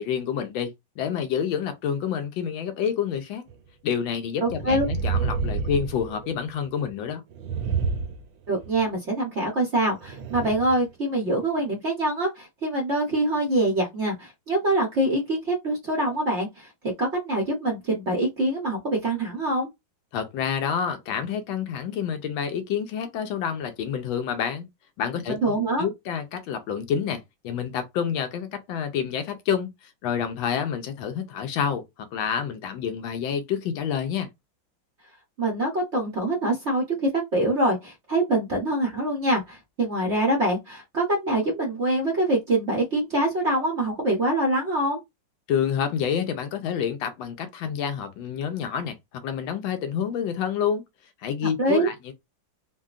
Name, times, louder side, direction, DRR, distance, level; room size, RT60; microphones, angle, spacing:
voice 1, 0.0-3.4 3.8-7.2 20.1-24.7 25.0-29.7 30.0-34.3 45.5-49.0 49.2-50.8 51.2-52.1, left 8 dB, 75° left, 1.4 m, -28 dB
sound 1, 3.5-3.6 4.4-6.6 7.3-8.9 10.0-10.8 11.4-11.5, right 5 dB, 75° right, 1.4 m, -29 dB
voice 2, 4.4-4.9 8.5-16.7 17.0-19.7 25.3-25.9 35.4-45.0 51.6-51.9, right 1 dB, 55° right, 0.7 m, -24 dB
3.8 x 2.2 x 2.4 m
omnidirectional pair, 2.2 m